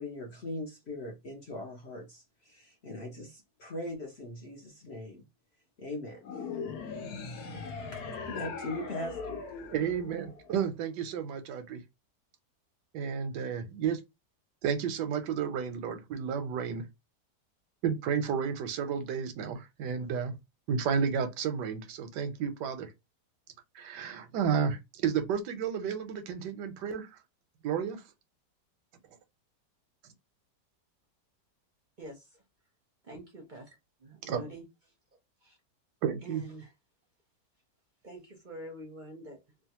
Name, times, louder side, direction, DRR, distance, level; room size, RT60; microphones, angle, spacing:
voice 1, 0.0-5.2 5.8-6.7 7.9-9.4, left 1 dB, 55° left, 0.8 m, -40 dB
sound 1, 6.2-10.7, left 5 dB, 70° left, 1.3 m, -40 dB
voice 2, 9.7-11.8 12.9-14.0 14.6-16.9 17.8-20.3 20.7-22.9 23.7-27.1 27.6-28.0 34.2-34.4 36.0-36.4, right 7 dB, 90° right, 1.2 m, -32 dB
voice 3, 33.0-33.7 34.0-34.6 35.4-35.6 36.2-36.7 38.0-39.4, right 1 dB, 50° right, 0.5 m, -45 dB
3.1 x 2.3 x 2.8 m
omnidirectional pair, 1.8 m